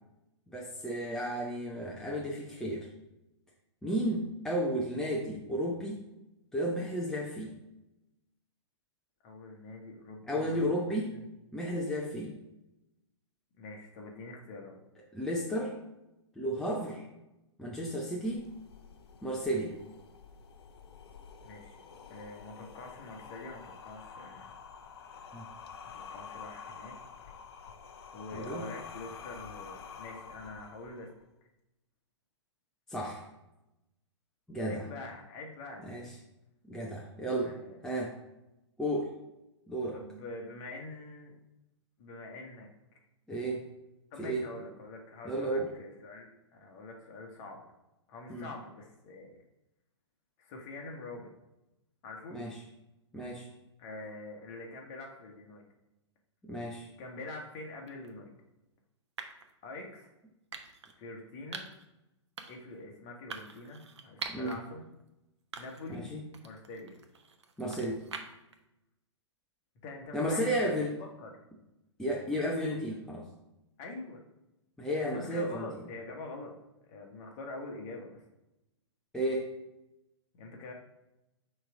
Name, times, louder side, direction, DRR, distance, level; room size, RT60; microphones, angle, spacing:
voice 1, 0.5-2.9 3.8-6.0 6.5-7.6 10.3-11.2 11.5-12.4 15.1-15.8 16.4-17.0 17.6-18.5 19.2-19.8 25.3-25.5 28.3-28.6 32.9-33.2 34.5-34.8 35.8-36.1 36.6-37.6 37.8-38.2 38.8-39.1 39.7-40.0 43.3-43.7 44.2-44.5 45.2-45.7 48.3-48.5 52.3-52.6 53.1-53.5 56.4-56.9 64.3-64.6 65.9-66.2 67.6-68.0 70.1-70.9 72.0-73.3 74.8-75.7 79.1-79.5, equal, 5° left, -3 dB, 0.8 m, -33 dB
voice 2, 9.2-11.2 13.6-14.8 21.4-21.8 22.1-24.6 25.8-27.0 27.3-27.4 28.1-31.1 34.7-35.9 37.4-37.8 39.9-41.4 42.0-42.7 44.1-47.6 48.1-49.4 50.4-51.3 52.0-52.4 53.8-55.6 57.0-58.3 59.6-60.1 61.0-61.7 62.5-64.9 65.6-66.1 66.4-67.0 69.8-71.4 73.8-74.2 75.0-76.6 76.9-78.2 80.3-80.7, left 2 dB, 35° left, 1 dB, 1.4 m, -45 dB
sound 1, 18.2-31.2, left 6 dB, 55° left, 0.7 m, -49 dB
sound 2, 57.9-58.1 59.2-59.5 60.5-60.9 61.5-61.9 62.4-62.7 63.3-64.6 65.0-65.1 65.5-66.0 66.3-68.5, right 5 dB, 65° right, 0.8 m, -44 dB
6.2 x 3.3 x 5.0 m, 0.92 s
figure-of-eight pair, 110°, 15 cm